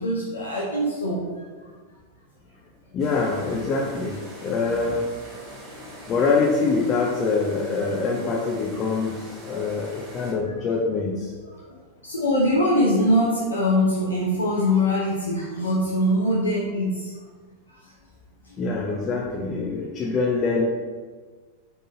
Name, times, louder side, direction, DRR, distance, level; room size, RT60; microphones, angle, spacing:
voice 1, 0.0-1.4 11.4-11.8 12.0-17.1 17.7-17.9 18.4-18.6, left 1 dB, 75° left, -5 dB, 0.7 m, -23 dB
voice 2, 2.9-5.1 5.4-11.3 18.6-20.6, left 4 dB, 30° left, -2 dB, 0.5 m, -25 dB
sound 1, 3.0-10.3, equal, 25° right, 1.4 m, -42 dB
4.0 x 3.7 x 2.7 m, 1.4 s
figure-of-eight pair, 90°, 0 cm